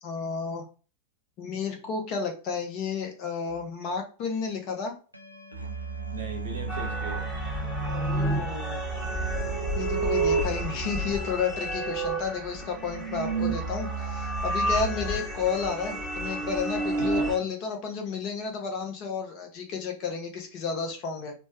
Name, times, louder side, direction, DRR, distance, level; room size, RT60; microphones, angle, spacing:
voice 1, 0.0-0.7 1.4-4.9 7.9-8.9 9.8-21.3, left 5 dB, 40° left, 0.9 m, -32 dB
sound 1, 3.5-3.6 5.1-15.2, right 5 dB, 85° right, 0.4 m, -37 dB
voice 2, 6.1-7.2 9.8-10.1 14.9-15.1 17.0-17.3, right 3 dB, 60° right, 0.8 m, -39 dB
sound 2, 6.7-17.4, right 2 dB, ahead, 1.0 m, -30 dB
3.3 x 2.2 x 2.8 m
figure-of-eight pair, 90°, 0 cm